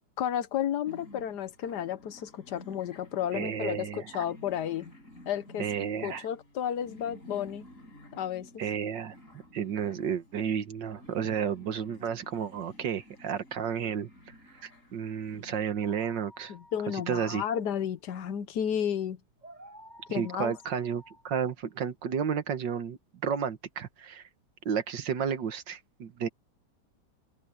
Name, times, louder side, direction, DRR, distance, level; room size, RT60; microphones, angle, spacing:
voice 1, 0.2-4.9 5.3-5.7 6.0-7.7 8.1-8.6 16.5-19.2 20.1-20.5, left 9 dB, 65° left, 1.5 m, -32 dB
sound 1, 0.9-15.6, left 1 dB, 45° left, 8.6 m, -53 dB
voice 2, 3.3-4.2 5.6-6.3 8.6-9.2 9.5-14.1 14.6-16.5 16.9-17.4 20.1-23.0 23.2-24.2 24.7-26.3, right 7 dB, 75° right, 2.0 m, -32 dB
sound 2, 15.8-22.4, equal, 20° right, 7.4 m, -54 dB
open air
omnidirectional pair, 2.0 m